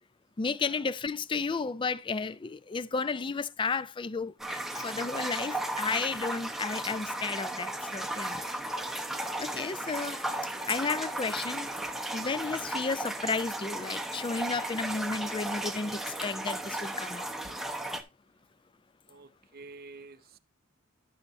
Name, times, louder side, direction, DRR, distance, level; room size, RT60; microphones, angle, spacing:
voice 1, 0.4-8.4 9.4-10.2 10.7-11.7 12.1-17.3, left 4 dB, 25° left, 0.4 m, -33 dB
sound 1, 4.4-18.0, right 1 dB, ahead, 0.9 m, -35 dB
voice 2, 5.0-5.4 9.1-9.3 19.1-20.4, right 4 dB, 50° right, 0.6 m, -49 dB
12.5 x 6.3 x 2.6 m
head